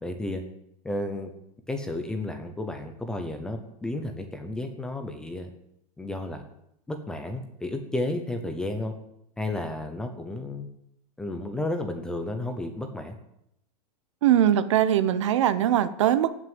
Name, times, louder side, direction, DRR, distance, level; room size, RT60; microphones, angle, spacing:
voice 1, 0.0-0.4 0.8-1.3 1.7-5.5 6.0-6.4 6.9-8.9 9.4-10.7 11.2-13.2, left 2 dB, 5° left, 6 dB, 0.6 m, -32 dB
voice 2, 14.2-16.4, right 11 dB, 50° right, 14 dB, 0.9 m, -21 dB
16.5 x 6.2 x 9.6 m, 0.79 s
supercardioid pair, 180°, 20 cm